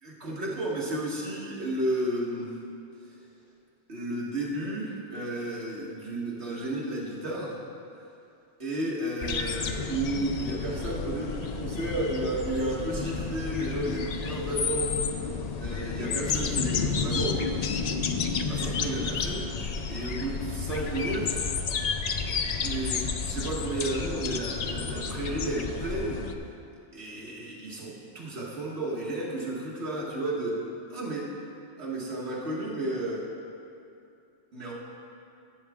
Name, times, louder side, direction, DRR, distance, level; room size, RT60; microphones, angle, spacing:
voice 1, 0.0-2.6 3.9-7.6 8.6-14.9 15.6-17.4 18.3-21.5 22.5-26.2 26.9-30.6 30.9-31.3 31.8-33.2 34.5-34.7, right 1 dB, 70° right, -4 dB, 1.9 m, -32 dB
sound 1, 9.2-26.3, left 5 dB, 55° left, 0.4 m, -31 dB
13.0 x 7.0 x 3.6 m, 2.6 s
omnidirectional pair, 1.2 m